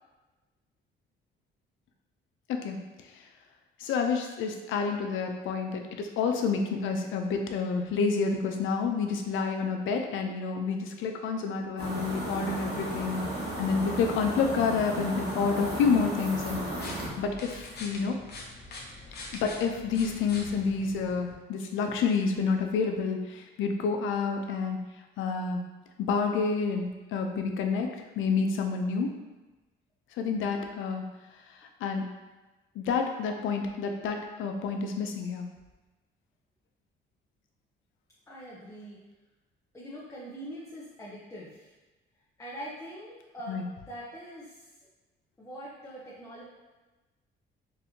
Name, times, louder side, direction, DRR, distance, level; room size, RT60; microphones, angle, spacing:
voice 1, 2.5-2.8 3.8-13.3 13.6-16.6 17.2-18.2 19.3-24.9 25.2-25.6 26.0-29.2 30.2-31.1 31.8-32.1 32.8-35.5 43.5-43.6, left 5 dB, 80° left, 4 dB, 0.5 m, -29 dB
sound 1, 11.8-17.1, right 1 dB, 55° right, 1.1 m, -34 dB
sound 2, 16.4-21.3, left 2 dB, 55° left, 0.8 m, -44 dB
voice 2, 38.3-39.0 39.7-41.7 42.4-43.6 43.9-44.7 45.4-46.4, right 1 dB, 15° left, -7 dB, 0.7 m, -43 dB
4.0 x 2.6 x 2.7 m, 1.2 s
cardioid pair, 90°, 20 cm